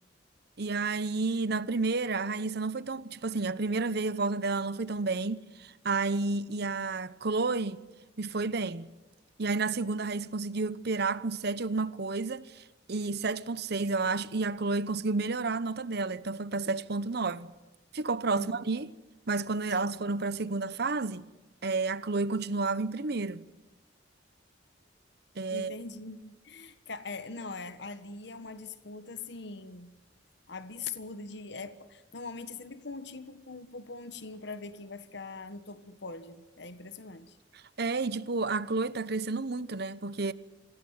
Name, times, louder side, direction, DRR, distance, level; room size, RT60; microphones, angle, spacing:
voice 1, 0.6-7.8 8.2-8.9 9.4-12.6 12.9-17.5 17.9-18.9 19.3-21.3 21.6-23.4 25.4-25.8 37.8-40.3, right 3 dB, 60° right, 0.9 m, -31 dB
voice 2, 18.3-18.7 19.9-20.0 25.5-29.9 30.5-37.4, left 3 dB, 65° left, 1.4 m, -42 dB
27.5 x 16.5 x 9.6 m
head